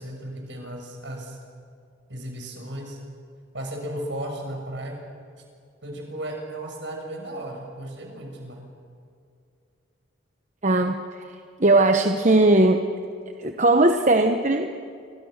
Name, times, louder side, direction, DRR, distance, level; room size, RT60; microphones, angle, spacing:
voice 1, 0.0-1.4 2.1-3.0 3.5-5.0 5.8-8.6, right 1 dB, 60° right, 2 dB, 6.6 m, -35 dB
voice 2, 10.6-11.2 11.6-12.8 13.4-14.7, right 2 dB, 35° right, 5 dB, 1.0 m, -19 dB
28.5 x 25.0 x 6.6 m, 2.4 s
head